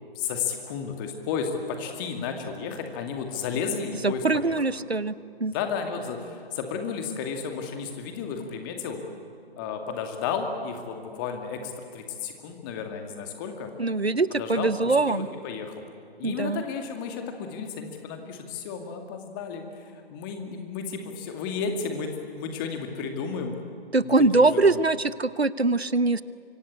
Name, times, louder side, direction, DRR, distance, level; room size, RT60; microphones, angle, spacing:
voice 1, 0.1-4.5 5.5-9.0 9.6-13.7 14.3-15.8 16.2-23.6 24.0-24.1 24.4-24.6, left 6 dB, 20° left, 5 dB, 2.4 m, -33 dB
voice 2, 4.0-5.1 5.4-5.5 13.8-15.3 16.2-16.6 23.9-26.2, right 3 dB, 90° right, 17 dB, 1.0 m, -23 dB
25.0 x 24.0 x 8.4 m, 2.3 s
figure-of-eight pair, 140°, 31 cm